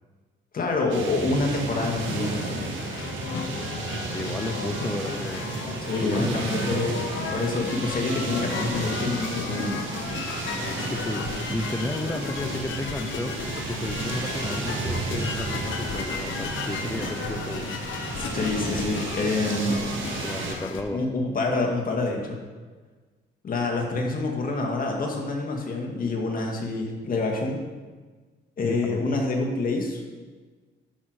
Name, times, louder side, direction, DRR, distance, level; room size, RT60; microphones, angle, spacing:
voice 1, 0.5-2.7 5.8-7.0 7.3-9.8 18.2-19.8 20.9-22.4 23.4-27.6 28.6-30.0, left 3 dB, 45° left, 0 dB, 2.1 m, -27 dB
sound 1, 0.9-20.6, right 3 dB, 75° right, 1.5 m, -33 dB
sound 2, 1.6-20.8, left 5 dB, 75° left, 1.0 m, -35 dB
voice 2, 4.1-5.6 6.0-6.5 10.9-13.3 13.7-17.7 20.2-21.0 28.6-29.0, left 2 dB, 10° left, 5 dB, 0.6 m, -33 dB
11.5 x 6.0 x 4.7 m, 1.4 s
cardioid pair, 90°, 20 cm